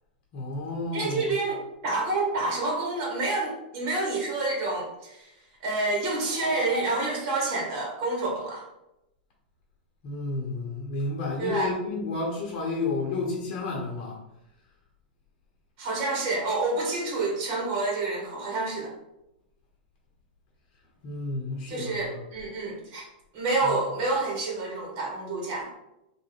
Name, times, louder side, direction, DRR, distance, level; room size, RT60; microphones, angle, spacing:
voice 1, 0.3-1.3 6.4-6.5 10.0-14.2 21.0-22.2 23.6-23.8, left 3 dB, 45° left, -2 dB, 0.9 m, -31 dB
voice 2, 0.9-5.3 5.6-8.6 11.4-11.7 15.8-18.9 21.7-23.1 23.3-25.7, right 2 dB, 45° right, -2 dB, 1.5 m, -28 dB
3.6 x 2.6 x 3.3 m, 0.89 s
hypercardioid pair, 125°, 5 cm